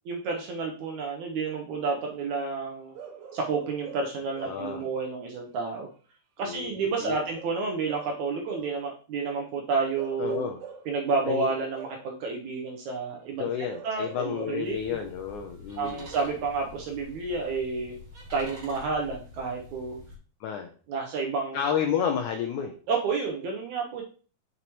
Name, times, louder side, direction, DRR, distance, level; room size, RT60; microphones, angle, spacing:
voice 1, 0.1-3.0 3.3-5.9 6.4-10.5 10.9-13.5 13.8-15.0 15.8-17.9 18.3-20.0 20.9-21.7 22.9-24.0, right 4 dB, 70° right, 1 dB, 1.9 m, -30 dB
Bark / Livestock farm animals working animals, 2.9-4.8 7.1-8.9 9.9-11.0 11.7-12.1 13.7-14.7 16.1-16.5, right 6 dB, 85° right, 3.0 m, -45 dB
voice 2, 4.4-4.8 6.4-7.2 10.2-10.6 11.3-11.5 13.4-16.1 20.4-20.7 21.5-22.7, left 8 dB, 80° left, 4 dB, 1.7 m, -31 dB
sound 1, 14.6-20.2, left 1 dB, 35° right, 2.9 m, -47 dB
6.8 x 6.6 x 3.1 m, 0.40 s
omnidirectional pair, 4.4 m